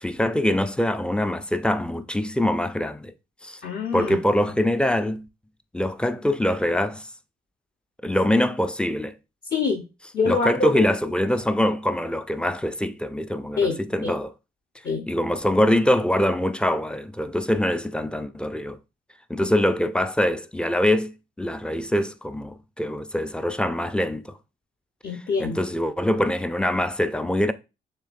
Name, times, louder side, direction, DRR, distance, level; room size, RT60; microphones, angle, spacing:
voice 1, 0.0-3.1 3.4-3.6 3.9-5.3 5.7-7.1 8.0-9.2 10.3-14.3 15.1-18.8 19.3-21.1 21.4-24.4 25.4-27.5, left 1 dB, 5° left, 0.4 m, -24 dB
voice 2, 3.6-4.2 9.5-9.8 10.1-10.9 13.6-14.1 14.8-15.1 25.0-25.6, left 4 dB, 50° left, 0.8 m, -25 dB
6.6 x 3.1 x 2.5 m
cardioid pair, 90°, 20 cm